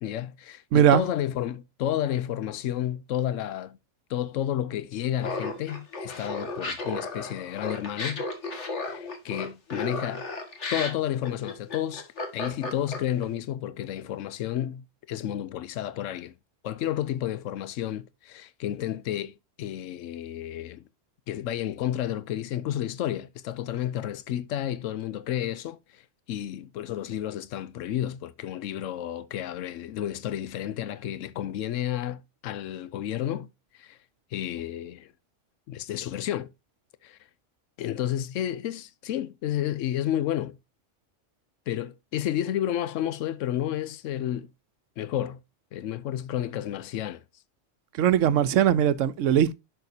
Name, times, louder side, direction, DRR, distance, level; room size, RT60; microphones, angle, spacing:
voice 1, 0.0-3.8 4.1-8.2 8.8-10.3 10.7-12.1 12.3-16.3 16.6-20.9 21.3-26.0 26.3-33.5 33.7-34.0 34.3-35.1 35.7-36.5 37.0-37.2 37.8-40.6 41.7-44.5 45.0-45.4 45.7-47.2, left 11 dB, 85° left, 1.0 m, -31 dB
voice 2, 0.7-1.0 48.0-49.5, right 10 dB, 80° right, 1.1 m, -20 dB
Laughter, 5.2-13.2, left 3 dB, 65° left, 2.1 m, -34 dB
10.5 x 6.6 x 2.7 m
omnidirectional pair, 1.3 m